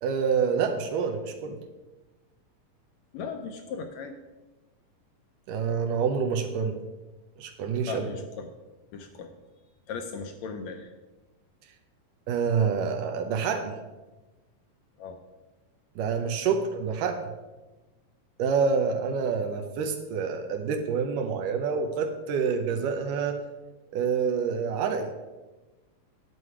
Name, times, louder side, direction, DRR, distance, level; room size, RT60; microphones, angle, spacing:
voice 1, 0.0-1.6 5.5-6.8 7.4-8.1 12.3-13.8 16.0-17.2 18.4-23.4 23.9-25.1, right 6 dB, 80° right, 4 dB, 2.4 m, -27 dB
voice 2, 3.1-4.1 7.9-8.2 8.9-9.3 9.9-10.9 15.0-15.2, left 5 dB, 75° left, 5 dB, 1.7 m, -37 dB
9.5 x 8.1 x 4.8 m, 1.1 s
omnidirectional pair, 3.7 m